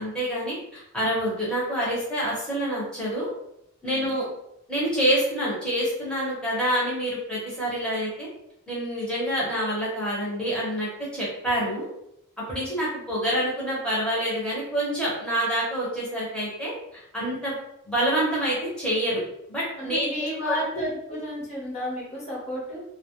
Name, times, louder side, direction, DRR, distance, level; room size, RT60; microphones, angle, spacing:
voice 1, 0.0-3.3 3.8-4.3 4.7-8.3 8.7-11.9 12.5-17.5 17.9-19.2 19.5-20.8, equal, 5° left, -8 dB, 0.9 m, -27 dB
voice 2, 19.8-22.8, left 1 dB, 30° left, -7 dB, 0.9 m, -32 dB
2.3 x 2.1 x 2.8 m, 0.77 s
head